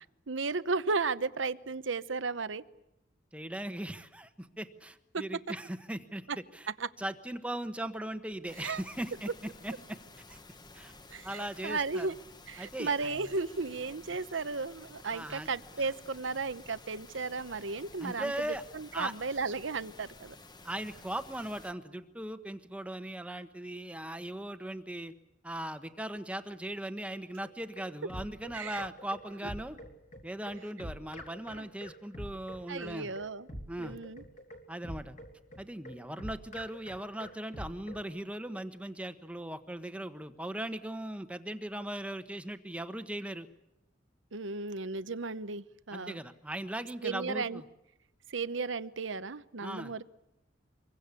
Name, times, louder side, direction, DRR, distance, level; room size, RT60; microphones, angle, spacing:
voice 1, 0.3-2.6 6.8-6.9 8.6-8.8 11.1-12.2 12.5-20.4 28.5-28.9 31.5-31.6 32.7-33.5 33.8-34.2 44.3-46.2 47.0-47.6 48.3-50.0, right 4 dB, 90° right, 14 dB, 1.0 m, -35 dB
voice 2, 3.3-6.7 7.0-9.3 9.6-10.0 10.3-10.4 10.7-10.9 11.2-12.2 12.6-13.3 15.1-15.5 15.8-15.9 18.0-18.6 18.9-19.1 20.6-25.1 25.4-29.8 30.2-33.1 33.7-34.0 34.7-35.2 35.6-43.5 45.9-47.6 49.6-49.9, right 1 dB, 5° right, 9 dB, 1.2 m, -39 dB
sound 1, 8.5-21.7, left 3 dB, 20° left, 1.3 m, -53 dB
sound 2, 27.4-38.1, equal, 40° left, 3.6 m, -45 dB
26.0 x 23.0 x 8.4 m, 0.88 s
head